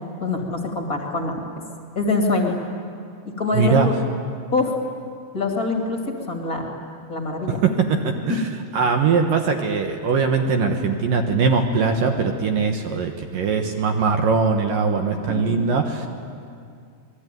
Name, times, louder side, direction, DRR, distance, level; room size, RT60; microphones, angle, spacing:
voice 1, 0.2-1.4 1.9-2.5 3.4-3.9 4.5-4.7 5.3-6.0 6.3-6.7 7.1-7.6 14.9-15.8, left 3 dB, 25° left, 1 dB, 2.1 m, -24 dB
voice 2, 3.5-3.9 7.5-16.1, right 5 dB, 65° right, 4 dB, 2.4 m, -21 dB
26.5 x 21.5 x 9.3 m, 2.3 s
omnidirectional pair, 5.4 m